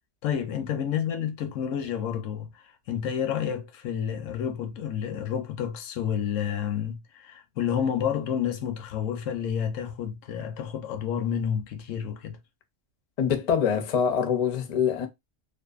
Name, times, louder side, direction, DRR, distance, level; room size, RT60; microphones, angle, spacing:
voice 1, 0.2-12.4, left 8 dB, 80° left, 0.9 m, -30 dB
voice 2, 13.2-15.1, left 7 dB, 50° left, 0.4 m, -24 dB
2.6 x 2.4 x 2.3 m
omnidirectional pair, 1.3 m